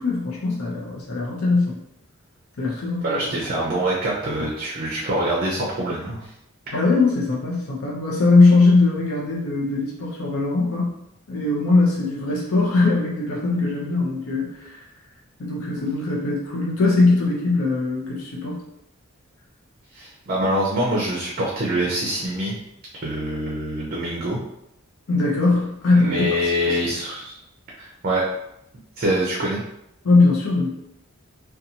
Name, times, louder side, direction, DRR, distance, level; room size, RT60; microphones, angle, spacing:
voice 1, 0.0-1.8 2.6-3.4 6.7-10.9 11.3-14.8 15.4-18.6 25.1-26.8 30.0-30.7, left 3 dB, 75° left, -4 dB, 0.6 m, -20 dB
voice 2, 3.0-6.3 19.9-22.5 23.0-24.4 25.9-27.3 27.8-28.2 29.0-29.6, right 1 dB, 45° right, -4 dB, 0.5 m, -24 dB
2.6 x 2.3 x 2.7 m, 0.82 s
head